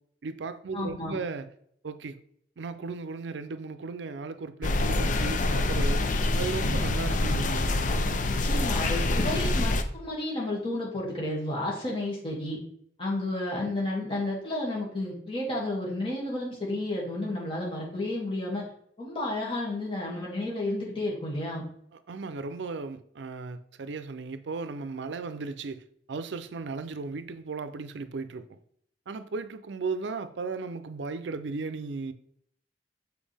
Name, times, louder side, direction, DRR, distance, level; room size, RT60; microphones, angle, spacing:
voice 1, 0.2-1.5 1.8-2.2 2.6-6.0 6.4-7.8 22.1-28.6 29.1-32.1, right 4 dB, 85° right, 0.5 m, -36 dB
voice 2, 0.7-1.2 6.6-6.8 8.3-12.6 13.0-18.6 19.0-21.7, left 1 dB, 30° left, 2.2 m, -32 dB
sound 1, 4.6-9.8, left 2 dB, 45° left, 0.5 m, -26 dB
7.2 x 4.6 x 3.4 m
head